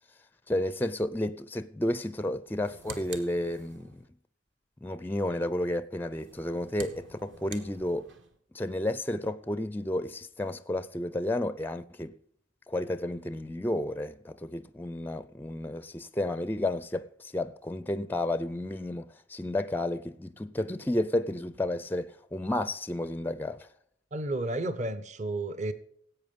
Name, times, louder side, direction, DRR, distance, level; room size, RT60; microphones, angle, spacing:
voice 1, 0.5-4.1 4.8-8.1 8.5-12.2 12.7-23.7, left 1 dB, 10° left, 0.4 m, -32 dB
sound 1, 2.4-4.1 6.1-8.4, right 4 dB, 65° right, 1.6 m, -47 dB
voice 2, 24.1-25.7, right 2 dB, 35° right, 0.7 m, -32 dB
17.0 x 8.3 x 5.2 m
head